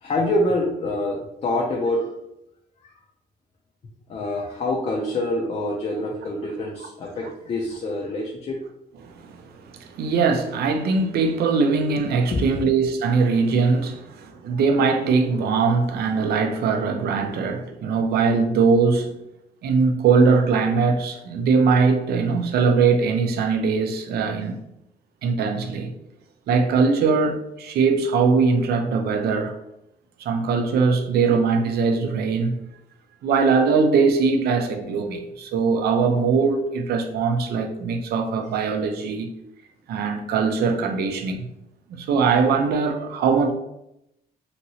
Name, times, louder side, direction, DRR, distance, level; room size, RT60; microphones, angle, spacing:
voice 1, 0.0-2.1 2.8-2.9 4.1-8.6 12.3-12.6, left 1 dB, 40° left, 0.5 m, -26 dB
voice 2, 9.0-19.1 19.6-24.6 25.2-25.9 26.5-29.5 30.2-32.6 33.2-39.3 39.9-41.5 41.9-43.5, right 5 dB, 75° right, 0.5 m, -21 dB
2.9 x 2.7 x 2.7 m
cardioid pair, 120°, 17 cm